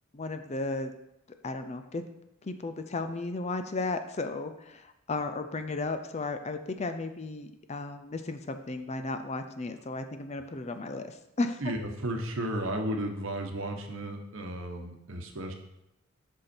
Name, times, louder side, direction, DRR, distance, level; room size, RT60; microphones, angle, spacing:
voice 1, 0.1-0.9 1.4-2.0 2.4-11.6, left 3 dB, 30° left, 8 dB, 0.4 m, -34 dB
voice 2, 11.6-15.5, right 1 dB, 60° right, 4 dB, 1.1 m, -34 dB
8.1 x 5.6 x 4.4 m, 0.86 s
head